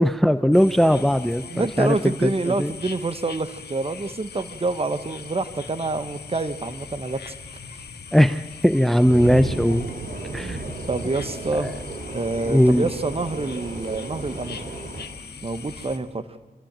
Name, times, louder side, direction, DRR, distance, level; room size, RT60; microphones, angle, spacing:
voice 1, 0.0-2.0 2.2-2.7 8.1-9.9 10.3-10.6 11.6-11.7 12.5-12.9, equal, ahead, 13 dB, 0.6 m, -19 dB
sound 1, 0.5-16.0, left 5 dB, 80° left, 1.6 m, -41 dB
voice 2, 1.5-7.3 10.3-10.6 10.9-11.7 12.1-14.7 15.4-16.2, right 3 dB, 35° right, 10 dB, 1.3 m, -27 dB
sound 2, 9.1-15.0, right 2 dB, 55° right, 3.2 m, -34 dB
27.0 x 13.0 x 9.0 m, 1.4 s
cardioid pair, 60°, 17 cm